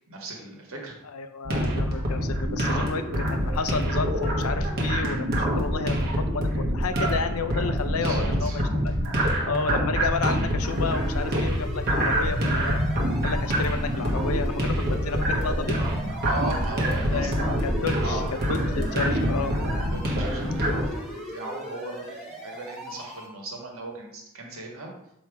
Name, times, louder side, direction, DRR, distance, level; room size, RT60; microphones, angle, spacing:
voice 1, 0.1-1.0 7.9-8.6 16.2-17.6 18.0-18.4 19.9-24.9, right 2 dB, 70° right, 0 dB, 1.5 m, -36 dB
voice 2, 1.0-9.0 9.4-12.8 13.2-15.8 17.1-17.3 17.6-18.2 18.5-19.6, left 4 dB, 90° left, 9 dB, 0.6 m, -31 dB
sound 1, 1.4-20.8, equal, 50° right, 1.2 m, -26 dB
sound 2, 10.6-23.3, left 1 dB, ahead, 1.4 m, -38 dB
7.4 x 3.0 x 4.7 m, 0.78 s
head